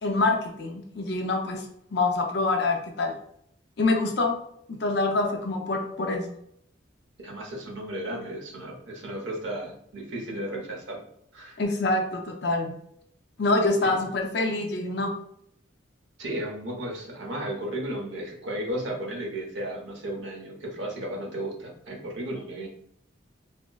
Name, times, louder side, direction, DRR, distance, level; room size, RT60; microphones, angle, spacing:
voice 1, 0.0-1.7 1.9-3.2 3.8-4.4 4.7-6.3 11.6-12.8 13.4-15.1, left 2 dB, 55° left, 3 dB, 0.5 m, -26 dB
voice 2, 7.2-11.0 11.3-11.6 13.8-14.0 16.2-22.7, right 1 dB, 75° right, -1 dB, 0.9 m, -34 dB
4.1 x 2.0 x 2.2 m, 0.69 s
head